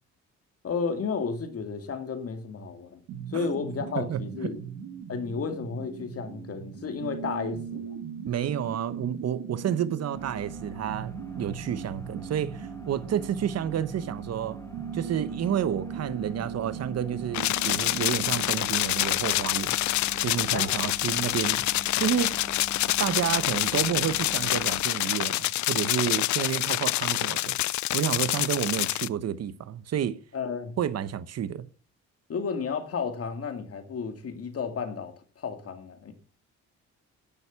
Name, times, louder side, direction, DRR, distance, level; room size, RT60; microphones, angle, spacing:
voice 1, 0.6-3.0 3.3-4.6 5.1-8.0 20.5-20.7 30.3-30.8 32.3-36.1, left 5 dB, 50° left, 2.3 m, -32 dB
sound 1, 3.1-18.6, right 7 dB, 85° right, 1.5 m, -39 dB
voice 2, 4.0-4.5 8.3-14.6 14.9-19.8 20.2-21.6 22.0-22.3 23.0-27.5 27.9-30.2 30.8-31.6, right 9 dB, 55° right, 1.0 m, -30 dB
sound 2, 10.1-24.8, right 3 dB, 10° left, 3.1 m, -43 dB
sound 3, 17.3-29.1, left 17 dB, 70° left, 0.5 m, -27 dB
10.5 x 6.6 x 7.0 m
cardioid pair, 90°, 30 cm